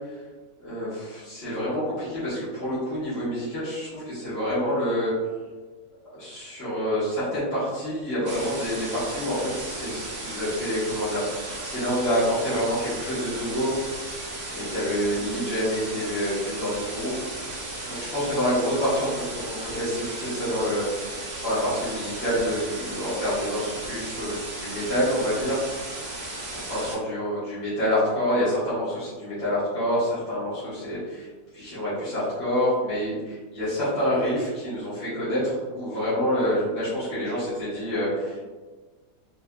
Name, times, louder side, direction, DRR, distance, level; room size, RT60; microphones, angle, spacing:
voice 1, 0.6-5.1 6.1-11.3 11.6-13.7 14.1-17.3 17.9-25.6 26.5-31.3 31.5-38.5, equal, 40° left, -13 dB, 1.5 m, -27 dB
sound 1, 8.2-27.0, right 2 dB, 55° right, 0.4 m, -35 dB
4.0 x 2.7 x 2.2 m, 1.3 s
omnidirectional pair, 1.8 m